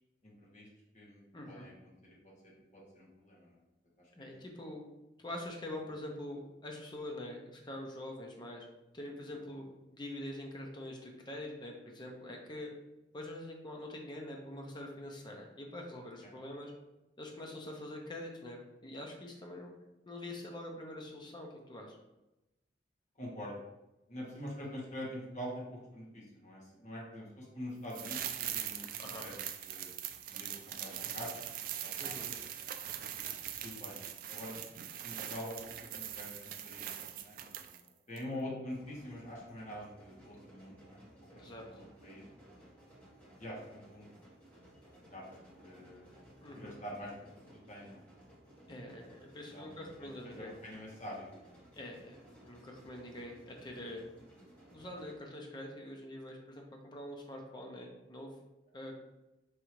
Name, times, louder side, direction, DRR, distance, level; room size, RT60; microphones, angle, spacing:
voice 1, 0.2-0.7 0.9-2.2 2.4-3.6 4.2-4.3 23.2-23.5 24.1-29.3 29.6-29.9 30.3-31.5 31.8-32.4 33.6-34.0 34.3-34.6 35.0-35.6 35.9-37.7 38.1-42.2 43.4-44.1 45.1-46.0 46.5-47.2 47.7-48.0 49.5-50.1 50.4-51.5, left 1 dB, 40° left, -5 dB, 1.3 m, -45 dB
voice 2, 1.3-1.7 4.2-4.8 5.2-8.7 8.9-9.7 9.9-12.7 13.1-16.7 17.2-19.7 20.1-22.0 29.0-29.2 32.0-32.3 41.3-41.6 46.4-46.8 48.7-50.5 51.7-54.0 54.7-58.3 58.7-58.9, left 1 dB, 25° left, 1 dB, 0.6 m, -45 dB
sound 1, 27.9-37.9 38.2-38.3, right 10 dB, 50° right, 0.3 m, -41 dB
sound 2, 38.7-55.2, right 1 dB, 10° left, 1.3 m, -58 dB
4.8 x 2.7 x 3.0 m, 0.97 s
head